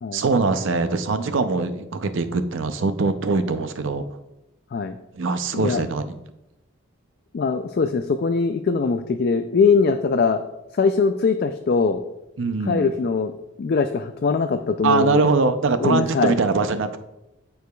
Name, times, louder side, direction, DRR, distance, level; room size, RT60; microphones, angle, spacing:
voice 1, 0.1-4.0 5.2-6.1 12.4-12.9 14.8-17.0, right 4 dB, 60° right, 10 dB, 0.5 m, -22 dB
voice 2, 7.3-10.4 10.8-12.0 12.6-15.2 15.8-16.4, left 4 dB, 45° left, 7 dB, 0.3 m, -21 dB
13.0 x 4.7 x 2.3 m, 0.92 s
head